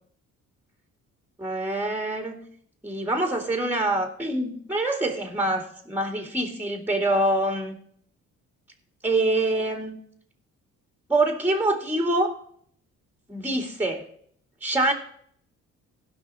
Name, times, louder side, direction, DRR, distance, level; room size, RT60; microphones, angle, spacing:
voice 1, 1.4-2.5 2.8-7.7 9.0-10.0 11.1-12.3 13.3-14.0 14.6-14.9, right 2 dB, 5° right, 4 dB, 2.3 m, -25 dB
16.5 x 5.6 x 4.3 m, 0.62 s
cardioid pair, 90°, 30 cm